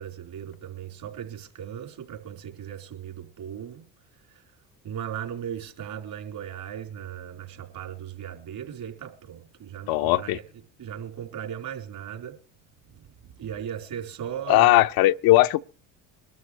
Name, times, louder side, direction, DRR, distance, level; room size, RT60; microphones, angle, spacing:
voice 1, 0.0-3.8 4.8-10.4 10.8-12.4 13.2-14.8, right 9 dB, 60° right, 4.2 m, -37 dB
voice 2, 9.9-10.4 14.5-15.6, left 17 dB, 60° left, 0.6 m, -19 dB
23.0 x 12.5 x 3.2 m
hypercardioid pair, 65°, 40 cm